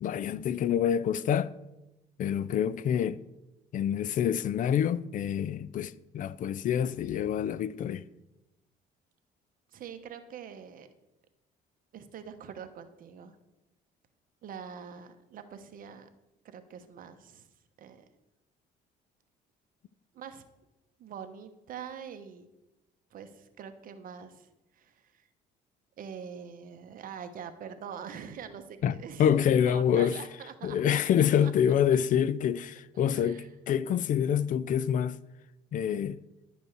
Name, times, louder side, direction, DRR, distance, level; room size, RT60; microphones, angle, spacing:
voice 1, 0.0-1.5 2.2-3.2 3.7-8.0 28.8-30.2 30.6-35.2 35.7-36.2, left 9 dB, 50° left, 0.4 m, -27 dB
voice 2, 9.7-10.9 11.9-13.4 14.4-16.1 16.4-17.5 17.8-18.0 20.1-20.4 21.0-22.5 23.1-24.5 24.7-25.3 26.0-29.3 29.6-31.5 32.9-33.5, right 7 dB, 55° right, 1.0 m, -44 dB
11.0 x 5.3 x 6.5 m
cardioid pair, 110°, 17 cm